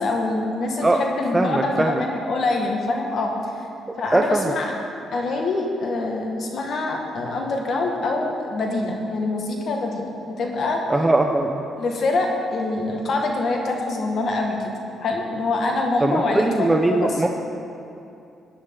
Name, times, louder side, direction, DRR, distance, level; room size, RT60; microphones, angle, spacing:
voice 1, 0.0-3.3 4.0-4.8 5.1-10.0 10.3-10.8 11.8-14.7 15.0-17.2, left 2 dB, 60° left, 1 dB, 1.7 m, -25 dB
voice 2, 1.3-2.0 4.1-4.5 10.9-11.6 16.0-17.3, right 2 dB, 15° right, 3 dB, 0.6 m, -20 dB
16.0 x 9.7 x 3.8 m, 2.7 s
cardioid pair, 90°, 0 cm